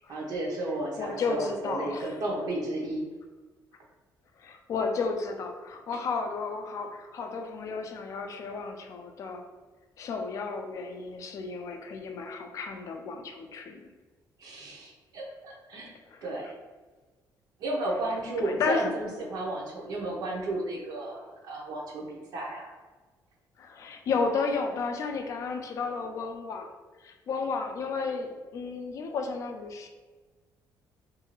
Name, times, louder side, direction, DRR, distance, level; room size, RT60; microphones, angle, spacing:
voice 1, 0.1-3.0 14.4-15.9 16.2-16.6 17.6-22.7, right 2 dB, 65° right, -2 dB, 0.7 m, -33 dB
voice 2, 1.0-2.1 4.4-9.4 10.0-13.9 16.1-16.2 18.4-18.9 23.6-26.7 27.0-29.9, left 4 dB, 45° left, 4 dB, 0.4 m, -32 dB
2.6 x 2.4 x 2.9 m, 1.3 s
cardioid pair, 160°, 7 cm